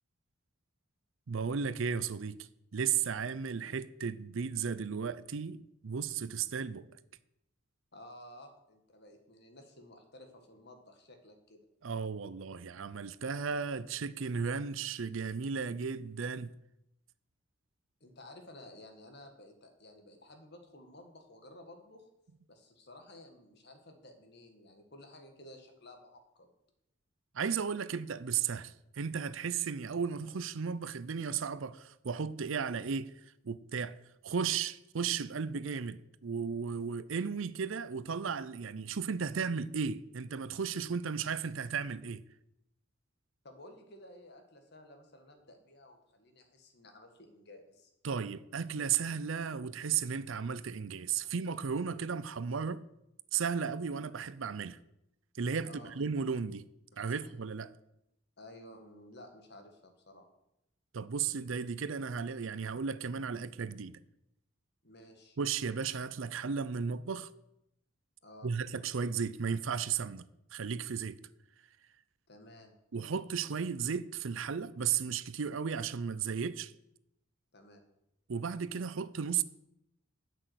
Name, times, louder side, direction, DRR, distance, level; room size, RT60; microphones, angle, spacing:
voice 1, 1.3-6.9 11.8-16.5 27.3-33.1 33.4-34.0 34.2-42.2 48.0-52.8 53.3-54.8 55.4-56.6 57.0-57.7 60.9-64.0 65.4-67.3 68.4-71.2 72.9-76.7 78.3-79.4, right 6 dB, 70° right, 0.5 m, -35 dB
voice 2, 7.9-11.6 18.0-22.1 22.5-26.5 43.4-47.9 51.2-51.3 55.6-55.9 57.1-57.3 58.4-60.3 64.8-65.4 68.2-68.5 72.3-72.7 77.5-77.8, left 1 dB, 50° left, 1.9 m, -54 dB
12.0 x 6.3 x 8.1 m
head